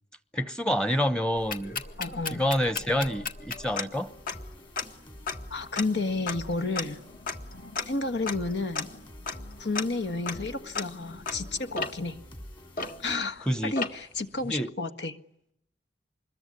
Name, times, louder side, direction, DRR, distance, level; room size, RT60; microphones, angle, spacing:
voice 1, 0.3-1.8 2.3-4.1 13.5-13.8 14.4-14.7, equal, 5° left, 1.0 m, -27 dB
sound 1, 1.4-13.4 13.8-14.2, left 4 dB, 55° left, 1.8 m, -36 dB
voice 2, 2.0-2.4 5.5-7.0 7.9-8.9 9.6-12.2 13.0-15.1, left 3 dB, 75° left, 1.6 m, -31 dB
sound 2, 3.9-13.2, equal, 30° left, 2.7 m, -47 dB
26.0 x 21.5 x 9.8 m
head